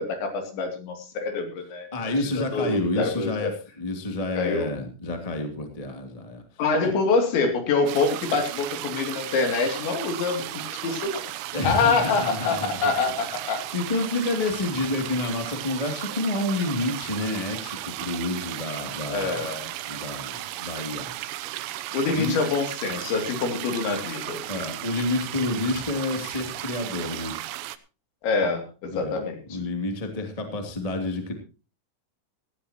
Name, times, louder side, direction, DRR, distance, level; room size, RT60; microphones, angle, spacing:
voice 1, 0.0-3.5 4.4-4.7 6.6-11.3 11.6-13.6 19.1-19.7 21.9-24.5 28.2-29.6, left 4 dB, 65° left, 5 dB, 4.9 m, -26 dB
voice 2, 1.9-3.5 3.8-6.4 6.8-6.9 11.5-12.9 13.7-19.4 19.8-21.1 22.1-22.4 24.5-27.3 28.9-29.2 29.5-31.3, left 2 dB, 15° left, 4 dB, 1.2 m, -29 dB
sound 1, 7.9-27.8, right 15 dB, 90° right, 3.5 m, -35 dB
18.0 x 15.0 x 3.0 m, 0.33 s
omnidirectional pair, 5.8 m